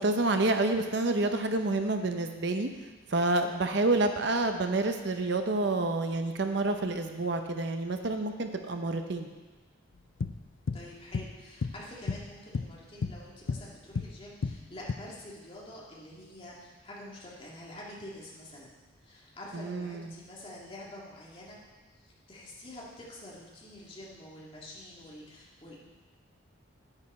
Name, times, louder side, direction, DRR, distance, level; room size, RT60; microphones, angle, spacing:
voice 1, 0.0-2.7 3.1-9.3 19.5-20.1, right 2 dB, 55° right, 6 dB, 0.7 m, -28 dB
sound 1, 10.2-10.9 11.1-11.4 11.6-12.8 13.0-14.2 14.4-14.9, left 4 dB, 65° left, 0.5 m, -33 dB
voice 2, 10.7-18.8 19.0-21.6 22.3-25.8, left 1 dB, 25° left, -5 dB, 2.1 m, -47 dB
9.9 x 9.7 x 4.2 m, 1.2 s
head